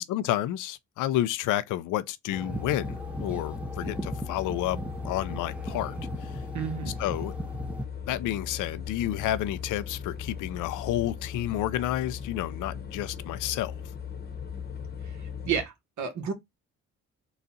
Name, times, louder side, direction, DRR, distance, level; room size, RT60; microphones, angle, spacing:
voice 1, 0.1-4.8 5.0-5.9 6.2-6.4 7.0-7.3 8.1-13.7, left 13 dB, 90° left, 0.5 m, -30 dB
sound 1, 2.3-7.8, right 1 dB, 5° right, 0.6 m, -38 dB
sound 2, 2.5-15.6, left 7 dB, 30° left, 0.9 m, -38 dB
voice 2, 6.5-7.0 15.0-16.3, right 7 dB, 70° right, 1.3 m, -32 dB
4.0 x 2.4 x 4.0 m
cardioid pair, 90°, 30 cm